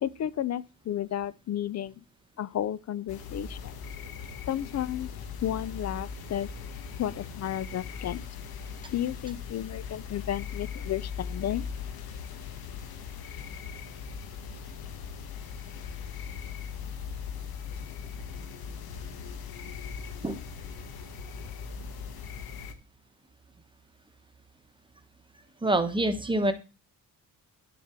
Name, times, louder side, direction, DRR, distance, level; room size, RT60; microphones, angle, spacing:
voice 1, 0.0-2.0 2.4-3.7 4.5-5.1 5.4-6.5 7.0-8.2 8.9-11.7, left 11 dB, 50° left, 0.5 m, -32 dB
sound 1, 3.1-22.7, left 6 dB, 85° left, 1.5 m, -39 dB
voice 2, 25.6-26.5, right 1 dB, 15° right, 1.0 m, -25 dB
10.5 x 7.0 x 4.4 m
cardioid pair, 150°, 35 cm